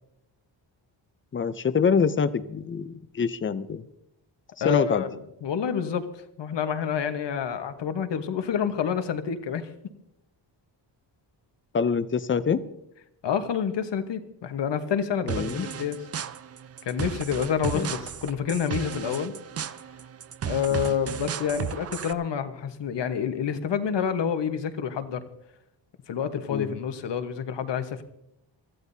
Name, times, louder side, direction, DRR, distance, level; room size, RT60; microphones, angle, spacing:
voice 1, 1.3-3.8 4.6-5.0 11.7-12.6 15.2-15.7 17.7-17.9 20.7-20.9 26.5-26.8, left 6 dB, 25° left, 14 dB, 0.5 m, -25 dB
voice 2, 4.6-9.7 13.2-16.0 16.8-19.3 20.4-25.2 26.1-28.0, left 7 dB, 65° left, 9 dB, 1.2 m, -28 dB
sound 1, 15.3-22.1, right 8 dB, 35° right, 0.4 m, -35 dB
25.0 x 14.5 x 2.7 m, 0.81 s
wide cardioid pair, 160°, 45 cm